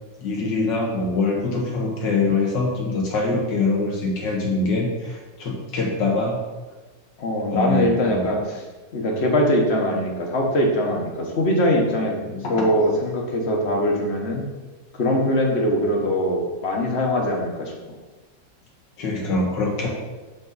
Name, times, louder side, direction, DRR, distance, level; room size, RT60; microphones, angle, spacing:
voice 1, 0.2-6.4 7.5-8.3 12.3-12.7 19.0-19.9, left 3 dB, 90° left, -1 dB, 2.1 m, -24 dB
voice 2, 7.2-8.6 8.9-12.2 12.5-14.4 14.9-17.7, left 1 dB, 45° left, 0 dB, 1.1 m, -22 dB
7.9 x 4.0 x 4.0 m, 1.2 s
omnidirectional pair, 1.9 m